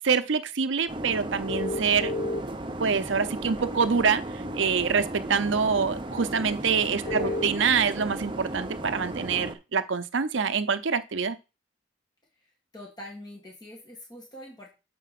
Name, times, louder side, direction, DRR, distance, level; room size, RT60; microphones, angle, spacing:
voice 1, 0.0-2.1 2.8-4.2 4.6-11.4, right 5 dB, 70° right, 0.7 m, -25 dB
sound 1, 0.9-9.5, right 1 dB, 25° right, 0.7 m, -35 dB
sound 2, 1.5-2.4 3.6-3.7 7.1-7.4, left 2 dB, 40° left, 1.3 m, -30 dB
voice 2, 6.8-7.4 12.3-14.7, left 1 dB, 20° left, 1.9 m, -44 dB
6.7 x 4.6 x 5.9 m
head